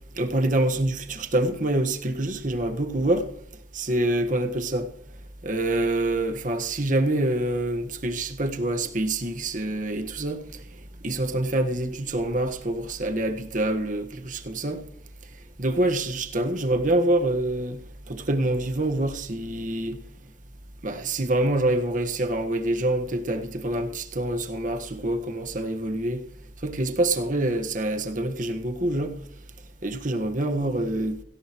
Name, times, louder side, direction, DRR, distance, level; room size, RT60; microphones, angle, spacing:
voice 1, 0.2-3.3 3.7-4.9 5.4-10.4 11.0-14.8 15.6-17.8 18.1-20.0 20.8-26.2 26.6-29.1 29.8-31.2, right 1 dB, 45° right, 1.5 m, -26 dB
17.5 x 17.0 x 3.1 m
head